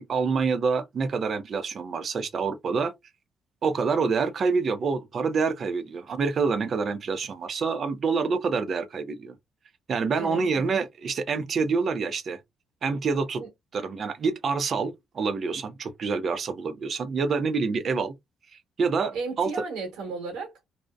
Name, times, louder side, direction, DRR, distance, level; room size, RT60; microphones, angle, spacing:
voice 1, 0.0-2.9 3.6-9.3 9.9-12.4 12.8-13.4 13.7-18.1 18.8-19.5, right 5 dB, 50° right, 0.5 m, -27 dB
voice 2, 10.1-10.7 13.4-13.5 19.1-20.5, right 4 dB, 90° right, 1.2 m, -34 dB
2.6 x 2.0 x 2.3 m
cardioid pair, 90°, 0 cm